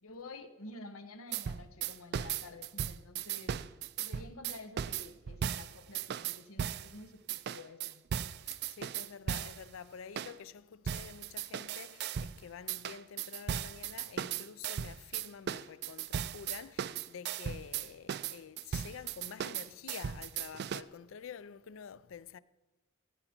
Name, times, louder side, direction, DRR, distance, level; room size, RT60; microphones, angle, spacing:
voice 1, 0.0-3.6 4.0-8.0, left 2 dB, 90° left, 1.1 m, -50 dB
sound 1, 1.3-6.9 7.3-9.6 10.2-10.3 10.9-12.4 12.7-20.8, right 8 dB, 50° right, 0.3 m, -37 dB
voice 2, 8.5-22.4, left 7 dB, 65° left, 0.4 m, -48 dB
16.0 x 8.9 x 4.4 m
head